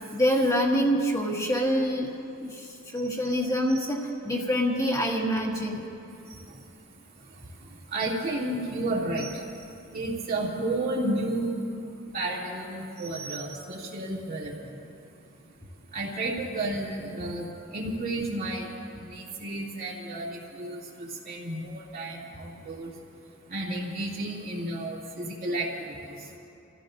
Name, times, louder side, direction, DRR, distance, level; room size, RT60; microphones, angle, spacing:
voice 1, 0.0-2.1 2.4-4.0 4.2-5.9, equal, 15° left, -1 dB, 1.9 m, -26 dB
voice 2, 3.0-3.9 6.3-6.6 7.9-9.6 9.9-11.5 12.1-14.7 15.9-18.7 19.0-22.9 23.5-26.3, right 2 dB, 45° right, -4 dB, 2.7 m, -32 dB
28.5 x 15.0 x 2.6 m, 2.6 s
head